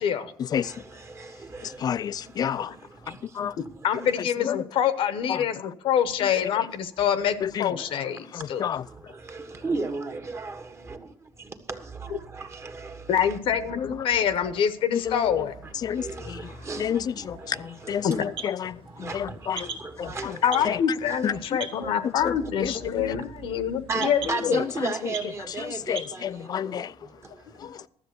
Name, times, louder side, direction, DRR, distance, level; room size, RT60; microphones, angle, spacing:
voice 1, 0.0-0.3 3.8-8.6 12.1-12.2 13.1-15.5 18.0-18.3 20.4-24.6, left 8 dB, 75° left, 1.0 m, -26 dB
voice 2, 0.6-1.8 3.1-3.2 4.0-4.1 7.2-7.3 8.6-8.7 9.3-11.0 11.7-13.4 13.7-13.8 16.0-17.0 17.3-18.0 19.0-19.4 19.8-20.8 21.3-21.4 21.8-21.9 23.9-26.8, right 3 dB, 30° right, 1.5 m, -34 dB
voice 3, 1.6-2.7 3.3-3.5 4.4-4.6 5.3-5.4 6.2-6.5 7.4-7.7 8.3-8.8 13.8-14.1 14.9-15.3 15.8-16.4 16.8-19.7 20.0-20.3 20.6-20.8 21.2-21.6 22.0-22.7 23.1-23.2 24.5-24.6 25.9-26.9 27.6-27.8, left 8 dB, 45° left, 0.4 m, -30 dB
sound 1, 16.2-26.1, right 4 dB, 75° right, 1.9 m, -43 dB
12.5 x 7.4 x 6.7 m
cardioid pair, 115°, 9 cm